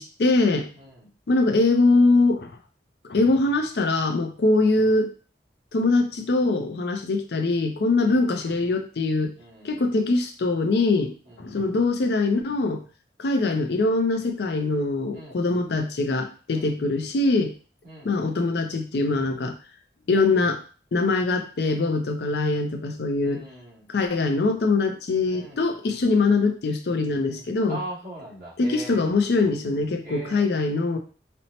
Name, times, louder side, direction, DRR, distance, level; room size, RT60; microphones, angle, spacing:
voice 1, 0.0-0.7 1.3-2.5 3.1-5.1 5.7-9.3 9.6-12.8 13.2-17.5 18.0-19.6 20.1-20.6 20.9-23.4 23.9-27.8 28.6-31.0, left 3 dB, 60° left, 5 dB, 0.5 m, -23 dB
voice 2, 0.7-1.1 8.0-8.3 9.4-9.9 11.3-11.5 15.1-15.5 16.5-16.8 17.8-18.2 23.2-23.9 25.3-25.6 27.3-29.0 30.0-30.5, right 1 dB, 55° right, -6 dB, 1.6 m, -41 dB
4.2 x 2.0 x 2.8 m, 0.37 s
head